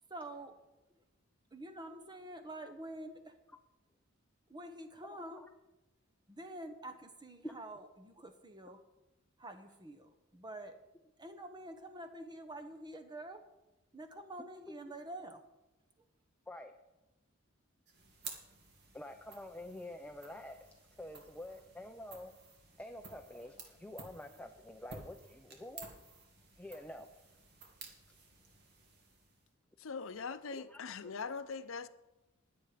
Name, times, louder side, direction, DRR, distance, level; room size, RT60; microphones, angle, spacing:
voice 1, 0.1-0.6 1.5-3.3 4.5-5.4 6.3-8.8 9.4-10.7 11.2-13.4 13.9-15.4, right 1 dB, 20° right, 1.2 m, -47 dB
voice 2, 5.1-5.5 7.4-7.6 16.5-16.7 18.9-20.6 20.9-22.3 22.8-25.9 26.6-27.1 30.5-30.8, left 1 dB, 5° left, 0.6 m, -48 dB
sound 1, 17.9-29.5, right 4 dB, 55° right, 2.4 m, -54 dB
voice 3, 29.8-31.9, left 5 dB, 75° left, 0.6 m, -41 dB
20.0 x 7.8 x 5.1 m
head